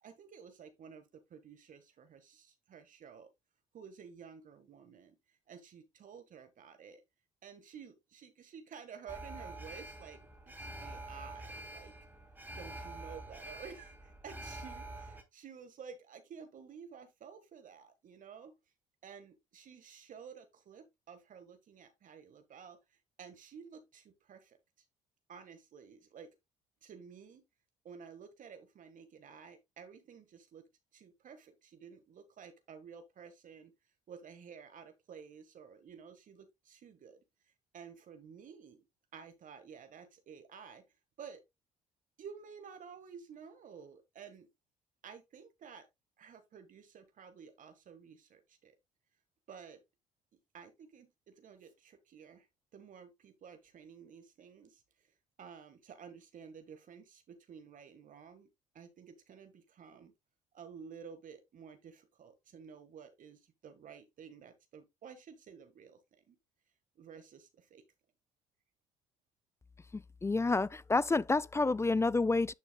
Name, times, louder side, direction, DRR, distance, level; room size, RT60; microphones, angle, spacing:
voice 1, 0.0-3.3 3.7-7.0 7.4-10.2 10.6-11.9 12.5-18.6 19.0-24.6 25.3-26.3 26.8-27.4 27.8-33.7 34.1-38.9 39.1-40.8 41.2-41.4 42.2-44.5 45.0-45.9 46.2-48.7 49.5-49.8 50.5-52.5 52.7-55.1 55.4-58.5 58.7-60.1 60.5-66.4 66.9-67.8, right 6 dB, 55° right, 1.4 m, -52 dB
Alarm, 9.1-15.2, right 2 dB, 10° right, 2.9 m, -46 dB
voice 2, 69.9-72.5, left 3 dB, 15° left, 0.4 m, -29 dB
10.5 x 6.1 x 2.2 m
hypercardioid pair, 55°, 16 cm